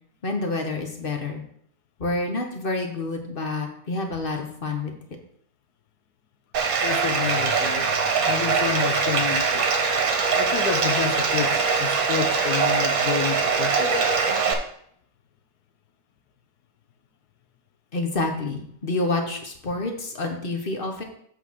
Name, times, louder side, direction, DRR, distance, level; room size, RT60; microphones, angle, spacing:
voice 1, 0.2-1.4 2.0-5.0 17.9-21.0, left 2 dB, 35° left, 3 dB, 1.2 m, -28 dB
Bathtub (filling or washing), 6.5-14.5, right 5 dB, 60° right, 1.4 m, -22 dB
voice 2, 6.8-9.7 10.4-14.1, left 7 dB, 70° left, 8 dB, 1.3 m, -29 dB
8.1 x 4.0 x 6.2 m, 0.66 s
omnidirectional pair, 1.9 m